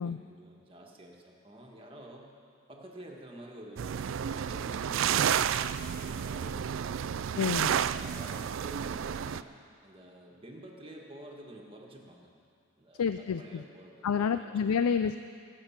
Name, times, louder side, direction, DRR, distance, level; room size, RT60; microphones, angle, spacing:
voice 1, 0.0-2.3 2.7-4.0 4.4-7.1 7.8-12.3 12.8-15.0, right 1 dB, 25° right, 0 dB, 1.6 m, -49 dB
sound 1, 3.8-9.4, right 8 dB, 60° right, 0.3 m, -31 dB
voice 2, 7.3-7.7 13.0-13.6 14.0-15.2, left 6 dB, 85° left, 11 dB, 0.4 m, -29 dB
22.5 x 7.7 x 5.9 m, 2.3 s
head